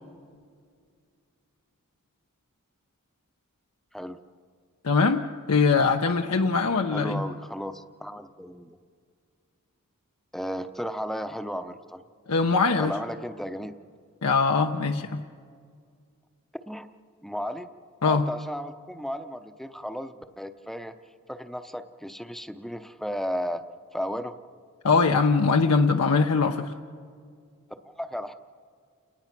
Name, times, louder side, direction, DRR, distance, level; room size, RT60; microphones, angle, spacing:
voice 1, 4.8-5.2 5.5-7.2 12.3-12.9 14.2-15.2 18.0-18.3 24.8-26.7, left 4 dB, 85° left, 4 dB, 0.8 m, -22 dB
voice 2, 6.9-8.8 10.3-12.0 12.8-13.7 16.7-16.9 17.2-17.7 18.1-20.9 21.3-23.6 23.9-24.3 27.8-28.3, equal, ahead, 9 dB, 0.7 m, -34 dB
29.5 x 19.0 x 6.0 m, 2.1 s
head